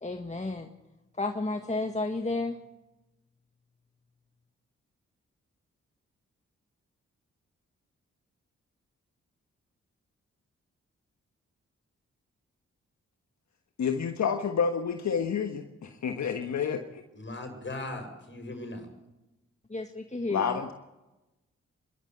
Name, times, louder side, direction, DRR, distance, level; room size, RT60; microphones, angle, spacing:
voice 1, 0.0-0.7 1.2-2.6 19.7-20.6, left 2 dB, 25° left, 5 dB, 1.8 m, -32 dB
voice 2, 13.8-17.0 20.3-20.7, left 6 dB, 70° left, 5 dB, 1.5 m, -29 dB
voice 3, 17.1-18.9, left 2 dB, 40° left, 5 dB, 7.0 m, -38 dB
26.0 x 12.5 x 8.1 m, 0.99 s
supercardioid pair, 50°, 29 cm